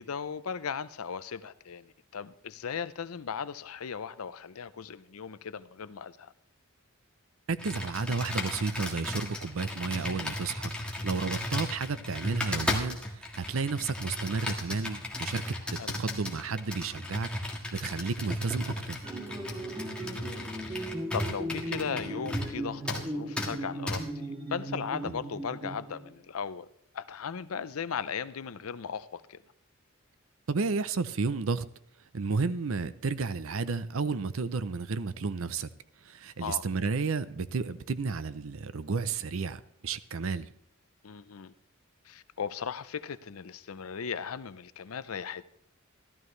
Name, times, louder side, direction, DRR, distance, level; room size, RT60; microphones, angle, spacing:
voice 1, 0.0-6.3 15.7-16.0 20.1-26.7 26.9-29.4 36.4-36.7 41.0-41.5 42.0-45.6, left 6 dB, 85° left, 0.6 m, -37 dB
voice 2, 7.5-10.7 11.0-13.0 13.3-15.4 15.7-19.0 25.0-25.1 30.5-31.6 32.1-35.7 36.1-40.5, right 4 dB, 70° right, 0.6 m, -32 dB
Computer keyboard, 7.6-22.6 22.9-23.0 23.4-23.5 23.9-24.0, left 1 dB, 5° left, 1.6 m, -35 dB
sound 1, 19.0-26.1, right 1 dB, 25° right, 2.5 m, -37 dB
14.0 x 12.5 x 3.2 m
head